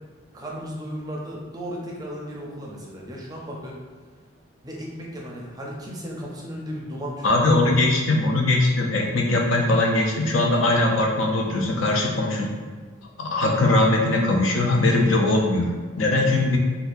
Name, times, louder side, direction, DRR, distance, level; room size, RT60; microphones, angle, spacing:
voice 1, 0.3-3.8 4.6-7.9 16.0-16.5, equal, 20° right, -3 dB, 0.5 m, -35 dB
voice 2, 7.2-12.5 13.2-16.6, left 2 dB, 75° left, 0 dB, 0.5 m, -21 dB
3.9 x 2.3 x 2.6 m, 1.5 s
head